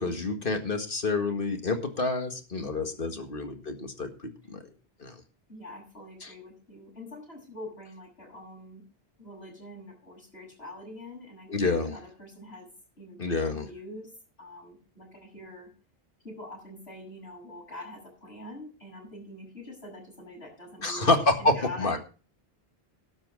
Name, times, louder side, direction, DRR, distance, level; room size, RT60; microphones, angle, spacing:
voice 1, 0.0-4.1 4.5-4.6 5.0-5.1 6.2-6.3 11.5-12.0 13.2-13.7 20.8-22.0, left 3 dB, 60° left, 7 dB, 2.0 m, -28 dB
voice 2, 2.6-3.2 5.5-8.8 9.2-11.6 11.9-12.7 13.0-14.1 14.4-15.7 16.2-21.1 21.4-22.0, left 1 dB, 85° left, -1 dB, 8.1 m, -44 dB
12.5 x 7.7 x 6.2 m, 0.35 s
omnidirectional pair, 1.0 m